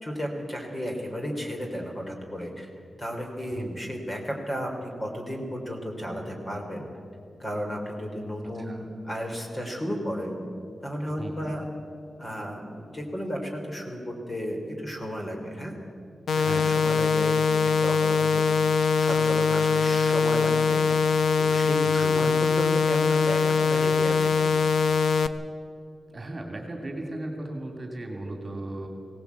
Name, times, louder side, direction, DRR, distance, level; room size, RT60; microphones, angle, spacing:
voice 1, 0.0-2.7 3.0-6.9 7.4-10.3 10.8-11.6 12.2-15.7 16.3-18.4 19.0-21.0 21.4-23.4 23.7-24.6, equal, 25° left, 1 dB, 3.3 m, -33 dB
voice 2, 8.4-8.8 11.2-11.5 16.3-17.0 21.8-22.3 26.1-28.9, right 1 dB, 25° right, 3 dB, 2.6 m, -37 dB
sound 1, 16.3-25.3, left 5 dB, 80° left, 0.9 m, -22 dB
21.5 x 17.5 x 8.3 m, 2.5 s
wide cardioid pair, 170°, 0 cm